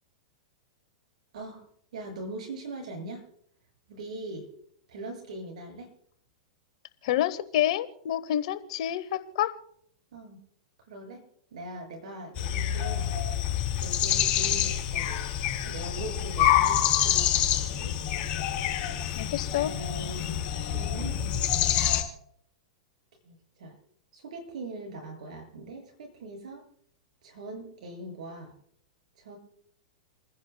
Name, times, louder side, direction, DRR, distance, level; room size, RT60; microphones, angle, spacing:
voice 1, 1.3-1.7 1.9-3.2 3.9-4.5 4.9-5.9 10.1-10.4 10.9-11.2 11.5-13.1 13.8-15.3 15.6-17.9 19.6-20.4 20.7-21.2 23.2-23.7 24.1-26.6 27.2-28.5 29.2-29.4, right 2 dB, 70° right, 2 dB, 7.1 m, -41 dB
voice 2, 7.0-9.5 19.1-19.7, left 12 dB, 60° left, 13 dB, 1.1 m, -28 dB
sound 1, 12.4-22.0, left 10 dB, 35° left, 3.8 m, -27 dB
29.5 x 10.5 x 2.3 m, 0.67 s
hypercardioid pair, 115°, 4 cm